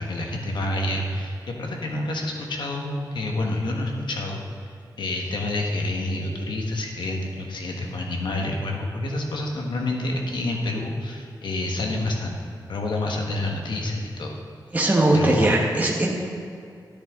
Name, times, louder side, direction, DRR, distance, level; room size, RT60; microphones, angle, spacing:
voice 1, 0.0-12.3 12.7-14.3 15.1-15.5, left 2 dB, 80° left, 1 dB, 1.4 m, -28 dB
voice 2, 14.7-16.1, right 1 dB, 20° right, -2 dB, 1.2 m, -20 dB
12.0 x 9.9 x 3.7 m, 2.3 s
wide cardioid pair, 140°, 8 cm